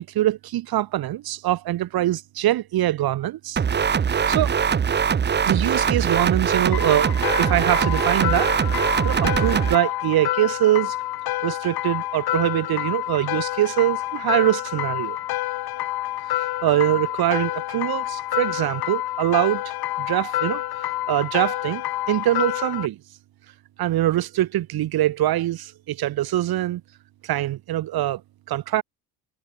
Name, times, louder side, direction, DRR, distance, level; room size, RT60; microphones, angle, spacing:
voice 1, 0.0-3.6 4.3-4.6 5.5-8.6 9.0-11.0 11.4-15.2 16.3-20.6 21.1-23.0 23.8-26.8 27.2-28.2 28.5-28.8, right 14 dB, 60° right, 3.7 m, -23 dB
sound 1, 3.6-9.7, right 7 dB, 25° right, 0.9 m, -22 dB
sound 2, 6.7-22.9, left 15 dB, 65° left, 3.3 m, -28 dB
supercardioid pair, 85°, 40 cm